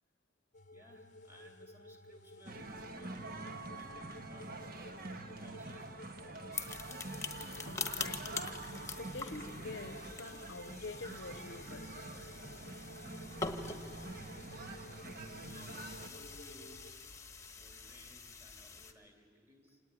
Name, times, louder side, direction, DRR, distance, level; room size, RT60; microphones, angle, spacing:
sound 1, 0.5-16.9, left 2 dB, 40° left, 0.8 m, -55 dB
voice 1, 0.7-3.4 3.7-5.1 5.4-5.9 6.2-6.7 15.4-17.0 17.5-19.8, equal, 10° right, 3.1 m, -60 dB
sound 2, 2.4-16.1, right 2 dB, 50° right, 1.3 m, -46 dB
sound 3, 6.5-18.9, left 4 dB, 15° left, 1.3 m, -45 dB
voice 2, 7.7-12.1, left 3 dB, 65° left, 0.8 m, -47 dB
27.0 x 18.5 x 9.9 m
head